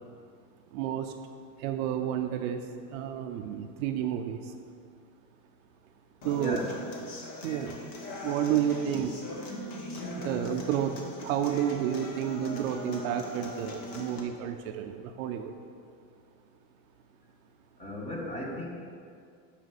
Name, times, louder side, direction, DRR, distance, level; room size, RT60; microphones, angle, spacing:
voice 1, 0.7-1.1 1.6-2.6 2.9-4.5 6.2-6.6 7.4-7.8 8.1-9.1 10.1-15.5, right 10 dB, 55° right, 6 dB, 0.6 m, -31 dB
Human voice / Acoustic guitar, 6.2-14.2, left 1 dB, 40° left, 1.5 m, -40 dB
voice 2, 6.4-6.7 17.8-18.7, left 1 dB, 15° left, -2 dB, 1.3 m, -35 dB
6.3 x 5.8 x 7.1 m, 2.3 s
supercardioid pair, 150°, 49 cm